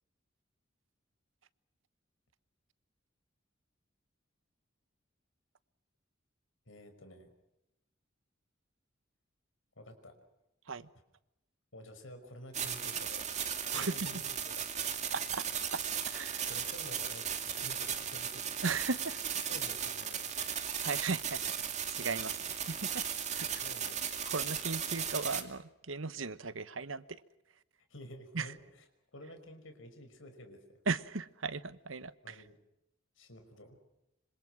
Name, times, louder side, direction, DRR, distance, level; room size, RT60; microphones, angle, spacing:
voice 1, 6.7-7.3 9.8-10.2 11.7-13.3 13.7-14.8 16.5-18.6 19.5-20.5 23.6-24.1 27.9-28.8 29.1-30.8 32.2-32.6 33.2-33.8, left 1 dB, 85° left, 5.5 m, -51 dB
sound 1, 12.5-25.4, right 8 dB, 35° right, 2.4 m, -36 dB
voice 2, 13.7-14.1 15.1-15.4 15.7-15.8 16.1-16.5 18.6-19.2 20.8-21.4 21.9-22.4 22.7-23.0 23.3-23.5 24.3-27.0 28.3-28.5 30.9-32.4, right 4 dB, 85° right, 1.1 m, -36 dB
26.5 x 26.0 x 6.2 m
head